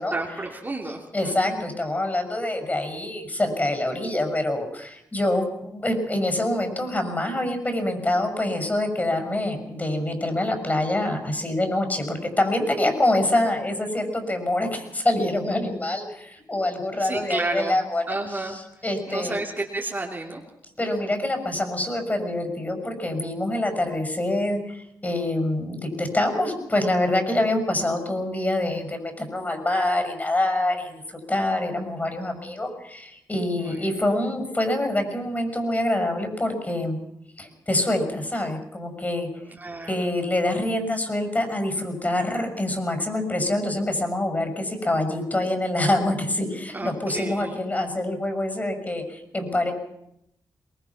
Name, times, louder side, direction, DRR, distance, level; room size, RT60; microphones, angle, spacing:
voice 1, 0.1-1.6 17.0-17.8 18.1-18.6 19.1-20.4 20.8-21.2 33.6-34.1 39.5-40.1 46.7-47.6, right 2 dB, 25° right, 0 dB, 2.9 m, -31 dB
voice 2, 1.1-18.0 18.8-19.3 20.8-37.0 37.4-39.3 39.9-49.7, left 1 dB, 25° left, 6 dB, 6.3 m, -25 dB
23.0 x 20.0 x 6.0 m, 0.81 s
cardioid pair, 70°, 7 cm